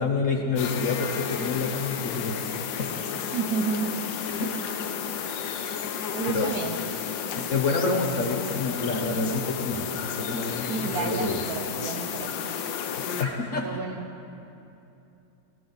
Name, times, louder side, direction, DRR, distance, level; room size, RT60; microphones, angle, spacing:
voice 1, 0.0-2.5 2.8-2.9 4.3-4.5 6.3-6.5 7.4-9.9 10.2-11.4 13.2-13.8, left 3 dB, 50° left, 1 dB, 1.0 m, -28 dB
sound 1, 0.6-13.2, left 7 dB, 70° left, 1.4 m, -32 dB
voice 2, 3.3-4.0 6.1-6.8 10.7-12.6 13.5-14.1, right 5 dB, 65° right, 5 dB, 0.9 m, -31 dB
18.5 x 13.0 x 4.0 m, 2.7 s
omnidirectional pair, 2.2 m